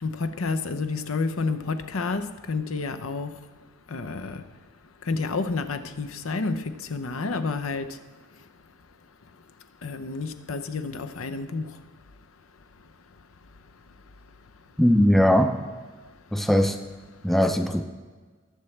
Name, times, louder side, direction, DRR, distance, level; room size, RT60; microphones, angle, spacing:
voice 1, 0.0-3.4 3.9-4.4 5.0-8.0 9.8-11.8, left 4 dB, 80° left, 0.7 m, -30 dB
voice 2, 14.8-15.5 16.3-16.8 17.2-17.8, equal, ahead, 0.5 m, -19 dB
19.5 x 7.1 x 3.3 m
head